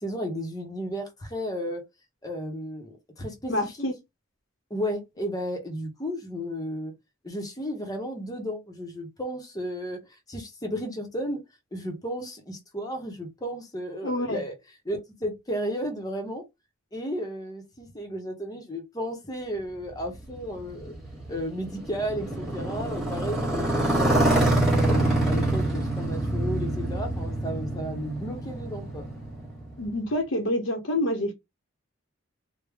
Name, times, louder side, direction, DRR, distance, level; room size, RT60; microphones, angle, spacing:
voice 1, 0.0-1.8 2.2-3.8 4.7-6.9 7.2-11.4 11.7-14.5 14.9-16.4 16.9-20.9 21.3-24.5 24.8-29.1, equal, 20° left, 0.8 m, -33 dB
voice 2, 3.5-3.9 14.0-14.4 29.8-31.3, left 1 dB, 70° left, 0.9 m, -27 dB
Motorcycle, 20.0-30.0, right 1 dB, ahead, 1.2 m, -26 dB
3.3 x 2.1 x 3.4 m
head